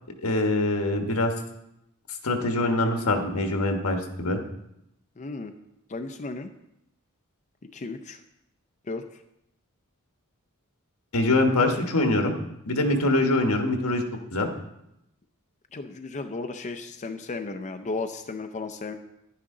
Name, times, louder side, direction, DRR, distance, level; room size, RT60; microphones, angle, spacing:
voice 1, 0.2-1.3 2.2-4.4 11.1-12.3 12.6-14.0 14.3-14.5, left 2 dB, 85° left, 4 dB, 1.4 m, -24 dB
voice 2, 5.2-5.5 5.9-6.5 7.6-8.2 8.8-9.2 15.7-18.9, left 3 dB, 35° left, 6 dB, 0.5 m, -34 dB
11.0 x 9.9 x 3.8 m, 0.83 s
head